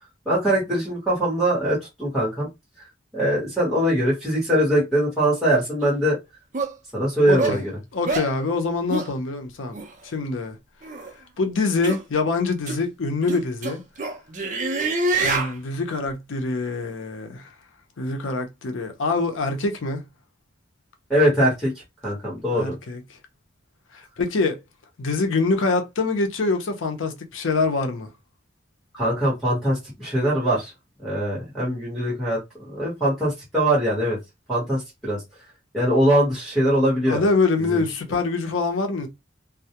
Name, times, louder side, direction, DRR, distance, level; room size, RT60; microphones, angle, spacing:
voice 1, 0.3-2.5 3.1-6.2 6.9-7.7 21.1-21.7 22.0-22.7 28.9-30.7 31.0-32.4 32.7-34.2 34.5-35.2 35.7-37.2 37.7-37.8, right 1 dB, ahead, 1.0 m, -22 dB
sound 1, 5.8-5.9 6.5-6.7 7.4-7.6 8.1-8.3 8.9-9.1 9.7-9.9 10.8-11.1 11.8-12.0 12.7-12.8 13.3-15.5, right 3 dB, 40° right, 0.5 m, -25 dB
voice 2, 7.2-7.6 7.9-9.8 10.0-10.6 11.4-13.8 15.2-17.5 18.0-20.0 22.5-23.0 23.9-24.6 25.0-28.1 37.1-39.1, left 3 dB, 85° left, 0.6 m, -25 dB
2.2 x 2.0 x 2.8 m
head